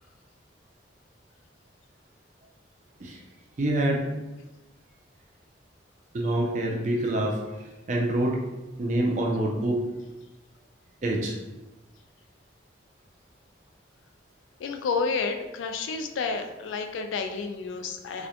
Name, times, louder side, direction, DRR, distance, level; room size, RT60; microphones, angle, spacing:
voice 1, 3.6-4.1 6.1-7.4 7.9-8.4 8.8-9.8 11.0-11.4, right 1 dB, 40° right, 0 dB, 0.4 m, -26 dB
voice 2, 14.6-18.3, left 4 dB, 85° left, 5 dB, 0.3 m, -30 dB
2.4 x 2.1 x 2.8 m, 1.0 s
head